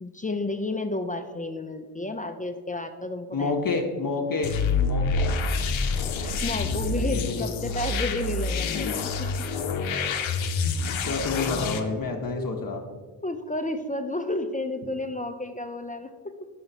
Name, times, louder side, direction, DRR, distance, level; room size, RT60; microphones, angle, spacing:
voice 1, 0.0-3.5 6.2-9.5 12.4-12.5 13.2-16.5, left 2 dB, 20° left, 7 dB, 0.4 m, -32 dB
voice 2, 3.3-4.5 4.8-5.4 6.9-7.5 11.0-12.8, left 4 dB, 45° left, 2 dB, 0.7 m, -29 dB
sound 1, 4.4-11.8, left 4 dB, 85° left, 0.6 m, -27 dB
5.9 x 4.2 x 4.0 m, 1.5 s
cardioid pair, 50°, 46 cm